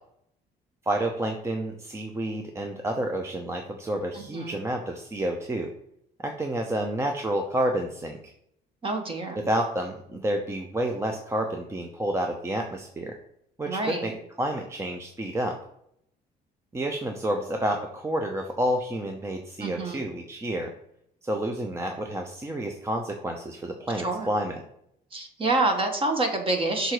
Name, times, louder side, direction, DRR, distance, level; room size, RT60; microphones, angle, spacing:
voice 1, 0.8-5.7 6.2-8.3 9.3-13.2 13.6-15.6 16.7-20.7 21.2-24.6, right 1 dB, 15° right, 3 dB, 0.7 m, -29 dB
voice 2, 4.1-4.6 8.8-9.5 13.7-14.1 19.6-20.0 24.0-24.3 25.1-26.9, right 2 dB, 30° right, 4 dB, 1.4 m, -27 dB
6.2 x 4.0 x 4.6 m, 0.72 s
cardioid pair, 110°, 17 cm